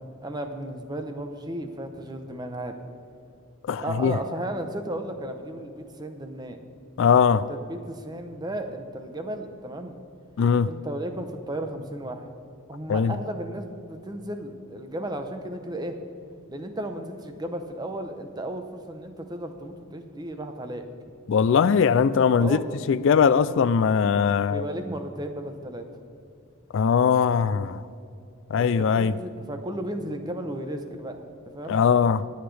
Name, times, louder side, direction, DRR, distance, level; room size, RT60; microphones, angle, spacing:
voice 1, 0.2-2.7 3.8-6.6 7.5-9.9 10.7-12.3 12.7-16.0 16.5-20.9 22.4-22.6 24.5-25.8 28.5-31.2 31.5-31.8, right 1 dB, 20° right, 6 dB, 0.8 m, -34 dB
voice 2, 3.7-4.2 7.0-7.5 10.4-10.7 12.9-13.2 21.3-22.6 22.9-24.6 26.7-27.8 28.5-29.1 31.7-32.2, left 6 dB, 60° left, 16 dB, 0.3 m, -20 dB
24.5 x 8.1 x 3.3 m, 2.5 s
head